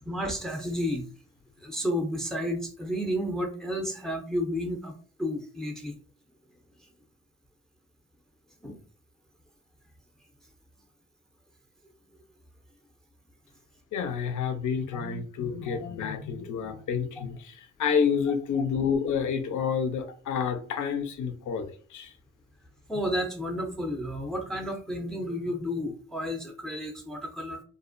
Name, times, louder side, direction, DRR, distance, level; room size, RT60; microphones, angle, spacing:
voice 1, 0.1-1.1 1.6-4.9 5.2-5.9 8.6-8.8 15.7-15.8 22.9-27.6, equal, ahead, 0.6 m, -31 dB
voice 2, 13.9-22.1, left 6 dB, 60° left, 0.5 m, -29 dB
2.4 x 2.0 x 2.5 m
hypercardioid pair, 45°, 34 cm